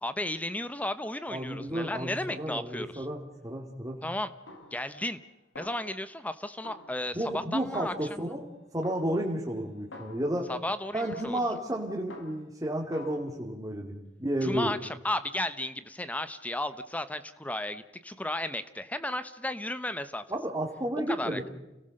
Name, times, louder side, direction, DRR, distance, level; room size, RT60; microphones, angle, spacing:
voice 1, 0.0-3.1 4.0-4.3 4.7-5.2 5.5-7.9 10.5-11.4 14.4-20.2 21.1-21.4, left 1 dB, 10° left, 12 dB, 0.9 m, -34 dB
voice 2, 1.3-4.0 7.1-8.5 8.7-10.5 10.9-14.7 20.3-21.5, right 1 dB, 15° right, -1 dB, 2.3 m, -32 dB
Snare drum, 4.5-5.3 5.6-6.3 6.6-8.4 8.8-10.5 11.0-12.6 12.9-13.2, left 2 dB, 70° left, 4.3 m, -49 dB
30.0 x 18.5 x 6.6 m, 1.0 s
head